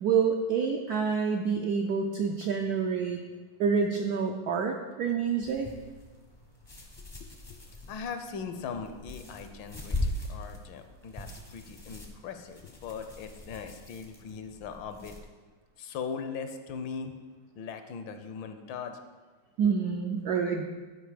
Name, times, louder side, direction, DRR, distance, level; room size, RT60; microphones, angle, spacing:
voice 1, 0.0-3.2 3.6-5.7 19.6-20.7, right 6 dB, 75° right, 3 dB, 0.8 m, -27 dB
sound 1, 5.4-15.2, left 2 dB, 30° left, 0.5 m, -40 dB
voice 2, 7.0-7.6 7.9-15.1 15.8-17.1 17.5-19.0, left 6 dB, 75° left, 8 dB, 1.3 m, -40 dB
11.0 x 4.8 x 4.9 m, 1.4 s
omnidirectional pair, 2.3 m